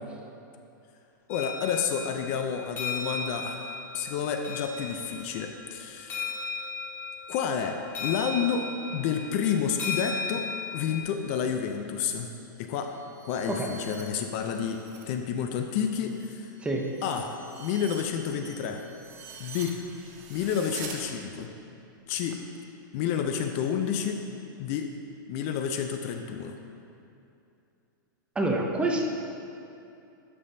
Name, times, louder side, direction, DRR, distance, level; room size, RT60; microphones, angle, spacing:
voice 1, 1.3-3.7 3.9-6.2 7.3-10.5 10.7-12.3 12.6-12.9 13.3-16.5 17.0-17.3 17.6-18.8 19.4-19.8 20.3-21.5 22.1-22.4 22.9-24.2 24.6-24.9 25.3-26.6, left 7 dB, 40° left, 5 dB, 0.5 m, -30 dB
sound 1, 1.3-11.0, left 4 dB, 20° left, 1.2 m, -36 dB
sound 2, 12.7-15.1 15.5-21.0, right 5 dB, 50° right, 1.0 m, -46 dB
voice 2, 28.4-29.1, right 2 dB, 10° right, 0 dB, 0.5 m, -27 dB
10.5 x 5.4 x 2.7 m, 2.7 s
supercardioid pair, 145°, 11 cm